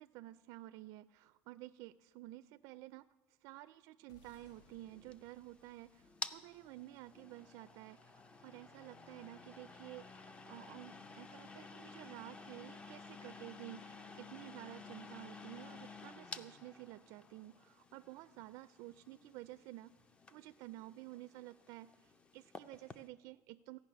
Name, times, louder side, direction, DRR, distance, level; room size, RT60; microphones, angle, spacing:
voice 1, 0.0-3.0 3.4-19.9 20.3-23.8, right 16 dB, 60° right, 11 dB, 0.3 m, -52 dB
sound 1, 4.1-8.5, left 2 dB, 80° left, 1.5 m, -69 dB
sound 2, 4.4-23.1, left 4 dB, 15° left, 0.4 m, -53 dB
15.0 x 5.9 x 9.4 m, 1.2 s
cardioid pair, 170°, 7 cm